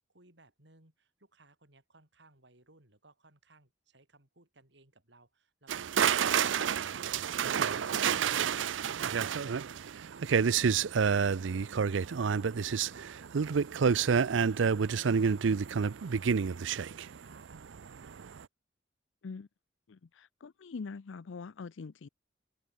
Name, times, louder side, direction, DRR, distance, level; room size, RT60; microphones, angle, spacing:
voice 1, 0.1-9.6 10.1-18.2, right 2 dB, 65° right, 5.6 m, -63 dB
sound 1, 5.7-17.8 18.1-18.4, right 6 dB, 85° right, 0.5 m, -29 dB
voice 2, 19.9-22.1, left 4 dB, 90° left, 0.5 m, -43 dB
open air
head